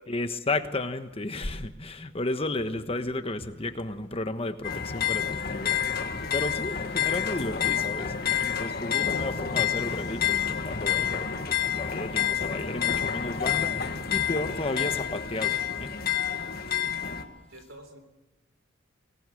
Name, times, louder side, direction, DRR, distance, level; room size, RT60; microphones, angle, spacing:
voice 1, 0.1-5.9 6.3-15.9, left 2 dB, 30° left, 1.2 m, -33 dB
sound 1, 4.6-17.2, left 8 dB, 50° left, 1.7 m, -28 dB
voice 2, 17.5-18.0, right 1 dB, 80° right, 3.8 m, -48 dB
24.5 x 18.5 x 7.8 m
head